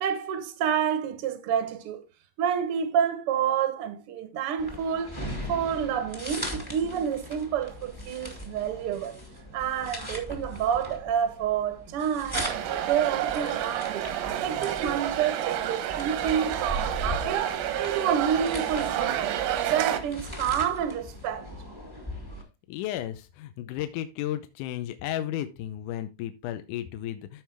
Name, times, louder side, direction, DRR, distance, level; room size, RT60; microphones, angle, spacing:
voice 1, 0.0-2.0 2.4-9.2 9.5-14.1 14.4-17.5 17.8-19.4 19.7-21.6, right 8 dB, 65° right, 1.4 m, -29 dB
sound 1, 4.6-22.4, equal, 10° left, 1.0 m, -39 dB
sound 2, 12.3-20.0, right 11 dB, 85° right, 2.7 m, -29 dB
voice 2, 22.7-27.4, left 12 dB, 75° left, 2.0 m, -33 dB
13.5 x 4.9 x 3.4 m
omnidirectional pair, 4.2 m